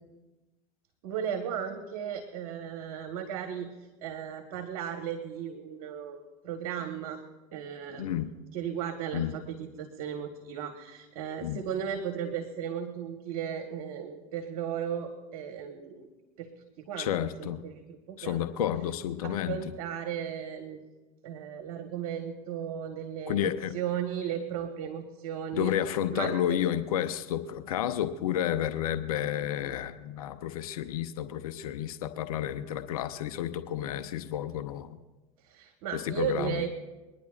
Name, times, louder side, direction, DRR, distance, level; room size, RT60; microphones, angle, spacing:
voice 1, 1.0-3.7 4.0-7.2 7.5-8.2 8.5-16.1 16.4-16.5 16.8-17.8 18.1-18.4 19.2-20.8 21.2-25.7 26.1-26.6 35.5-36.7, right 8 dB, 70° right, 5 dB, 1.3 m, -35 dB
voice 2, 8.0-8.3 9.1-9.4 11.4-11.6 17.0-17.6 18.2-19.7 23.3-23.7 25.5-35.0 35.9-36.6, left 11 dB, 85° left, 10 dB, 0.7 m, -31 dB
24.0 x 10.5 x 2.4 m, 1.1 s
hypercardioid pair, 85°, 18 cm